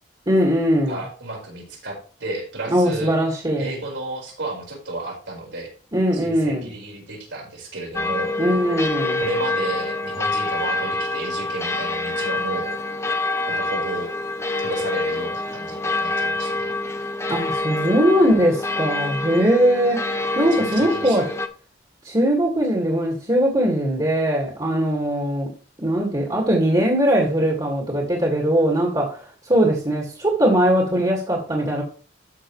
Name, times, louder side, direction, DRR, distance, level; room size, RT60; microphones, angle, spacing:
voice 1, 0.3-1.0 2.7-3.7 5.9-6.7 8.4-9.2 17.3-21.2 22.0-25.5 25.8-31.8, equal, 25° right, 2.1 m, -20 dB
voice 2, 0.9-3.1 3.6-5.7 6.1-8.3 9.2-12.8 13.5-14.1 14.6-16.7 20.8-21.3, right 2 dB, 75° right, 4.7 m, -32 dB
sound 1, 7.9-21.5, left 2 dB, 15° left, 0.6 m, -26 dB
12.5 x 6.2 x 3.2 m
head